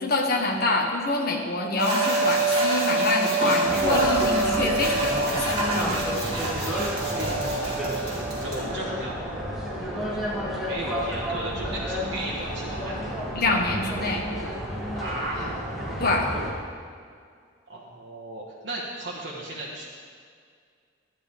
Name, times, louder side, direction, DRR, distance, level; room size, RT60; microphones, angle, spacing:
voice 1, 0.0-6.2 13.3-14.2 16.0-16.3, left 2 dB, 55° left, 1 dB, 1.5 m, -26 dB
sound 1, 1.8-8.5, right 2 dB, 35° right, 3.1 m, -26 dB
sound 2, 3.6-16.5, equal, ahead, 2.3 m, -30 dB
voice 2, 6.9-9.2 9.8-13.1 14.9-15.5 17.7-19.8, right 1 dB, 70° right, -5 dB, 1.4 m, -36 dB
12.5 x 11.0 x 3.5 m, 2.1 s
head